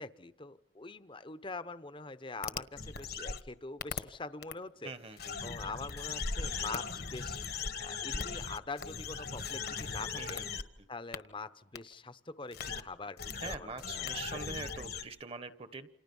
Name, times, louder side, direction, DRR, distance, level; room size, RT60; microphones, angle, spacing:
voice 1, 0.0-4.9 5.4-7.4 7.8-10.4 10.9-14.5, left 3 dB, 25° left, 13 dB, 0.9 m, -44 dB
sound 1, 2.4-3.4 3.8-4.0 4.4-4.5 5.2-10.6 11.1-11.2 11.8-11.9 12.5-12.8 13.2-15.0, left 5 dB, 55° left, 1.3 m, -38 dB
voice 2, 4.8-5.5 10.2-10.9 13.4-15.9, right 3 dB, 30° right, 12 dB, 1.2 m, -44 dB
29.5 x 27.5 x 5.5 m, 0.76 s
head